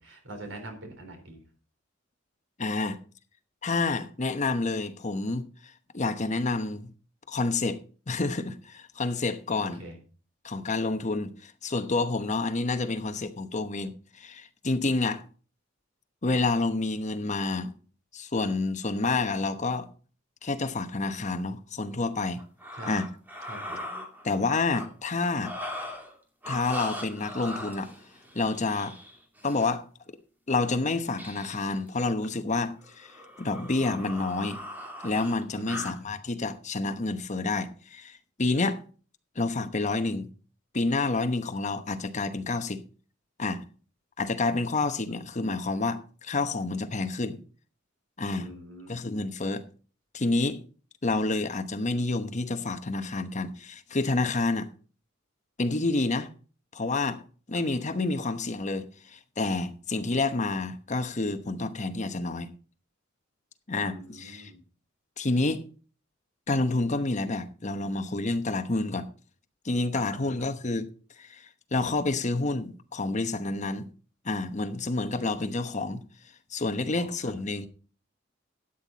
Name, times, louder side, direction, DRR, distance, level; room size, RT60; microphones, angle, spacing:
voice 1, 0.0-1.4 9.6-10.0 22.8-23.0 23.5-23.7 35.5-35.8 45.1-45.2 48.3-49.0 63.7-64.6 69.9-70.5 76.9-77.3, right 1 dB, 70° right, 4.1 m, -44 dB
voice 2, 2.6-3.0 3.6-6.9 7.3-7.8 8.1-9.8 10.4-15.2 16.2-17.7 18.1-19.9 20.4-22.4 22.9-23.1 24.2-25.5 26.5-27.9 28.3-29.0 29.4-29.9 30.5-34.6 35.0-38.8 39.3-40.3 40.7-42.8 43.4-43.6 44.2-47.4 48.2-48.5 48.9-49.6 50.1-50.6 51.0-54.7 55.6-56.3 56.7-57.2 57.5-62.5 63.7-64.5 65.2-65.6 66.5-69.1 69.6-70.9 71.2-73.9 74.2-76.0 76.5-77.7, left 3 dB, 40° left, 1.0 m, -29 dB
sound 1, 22.4-24.9 25.3-26.1 26.4-29.7 31.1-31.7 32.0-32.3 32.8-36.0, left 1 dB, 10° right, 2.5 m, -40 dB
12.5 x 9.2 x 4.1 m
head